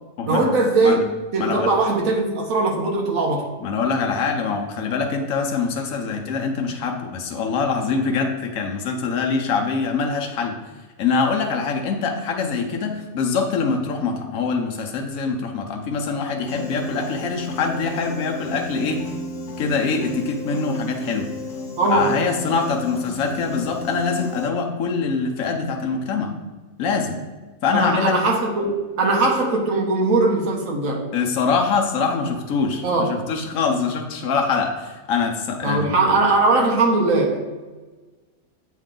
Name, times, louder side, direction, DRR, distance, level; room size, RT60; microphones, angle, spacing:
voice 1, 0.3-1.0 1.3-3.4 21.8-22.2 27.7-31.1 32.8-33.3 35.6-37.4, right 3 dB, 85° right, 0 dB, 1.4 m, -20 dB
voice 2, 1.4-1.7 3.6-10.6 11.0-19.0 19.6-21.3 21.9-26.3 26.8-27.2 27.6-28.2 31.1-36.2, left 5 dB, 80° left, 2 dB, 1.1 m, -24 dB
Piano, 16.5-24.5, left 2 dB, 60° left, 0.4 m, -33 dB
8.2 x 3.1 x 3.7 m, 1.3 s
omnidirectional pair, 1.4 m